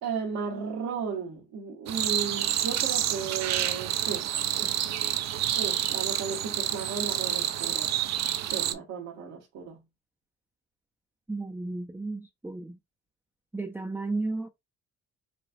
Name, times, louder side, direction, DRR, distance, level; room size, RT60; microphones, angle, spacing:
voice 1, 0.0-4.3 4.5-5.0 5.4-7.9 8.3-9.8, right 6 dB, 80° right, 1.2 m, -35 dB
sound 1, 1.9-8.7, right 11 dB, 60° right, 0.5 m, -28 dB
voice 2, 11.3-12.8 13.5-14.5, right 3 dB, 5° right, 0.5 m, -33 dB
4.9 x 2.4 x 2.5 m
cardioid pair, 90°, 30 cm